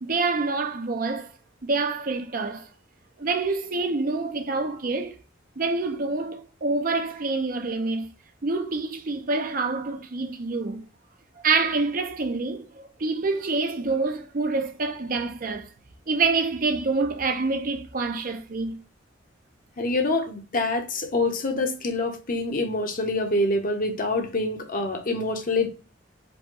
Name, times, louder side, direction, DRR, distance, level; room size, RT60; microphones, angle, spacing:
voice 1, 0.0-1.3 1.6-2.7 3.2-5.2 5.6-8.1 8.4-10.8 11.4-15.7 16.1-18.8, right 3 dB, 45° right, 0.6 m, -26 dB
voice 2, 19.8-25.7, left 2 dB, 45° left, 0.9 m, -26 dB
4.9 x 2.2 x 3.7 m
head